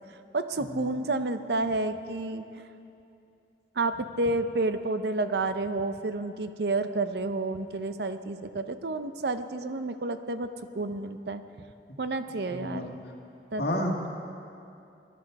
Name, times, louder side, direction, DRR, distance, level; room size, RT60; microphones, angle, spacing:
voice 1, 0.3-2.4 3.8-11.4 12.0-12.9 13.5-13.9, right 2 dB, 65° right, 10 dB, 0.6 m, -30 dB
voice 2, 12.5-12.9 13.6-14.1, left 1 dB, 65° left, 0 dB, 1.8 m, -30 dB
21.0 x 11.0 x 4.7 m, 2.6 s
head